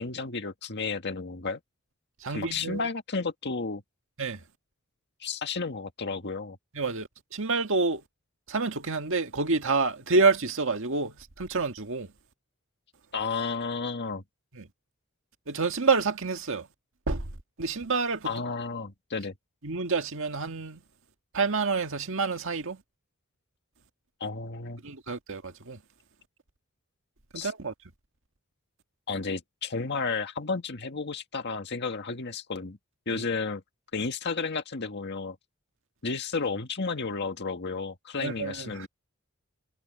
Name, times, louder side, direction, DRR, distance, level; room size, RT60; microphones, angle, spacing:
voice 1, 0.0-1.6 2.3-3.8 5.2-6.6 13.1-14.2 18.2-19.3 24.2-24.8 27.4-27.5 29.1-32.8 33.1-33.6 33.9-35.4 36.0-38.9, left 4 dB, 55° left, 1.8 m, -32 dB
voice 2, 2.2-2.8 4.2-4.4 6.7-8.0 8.5-12.1 14.5-14.7 15.5-16.7 17.1-17.3 17.6-18.3 19.6-20.8 21.3-22.8 24.8-25.8 27.3-27.7 33.1-33.2 38.2-38.9, right 4 dB, 65° right, 1.8 m, -28 dB
head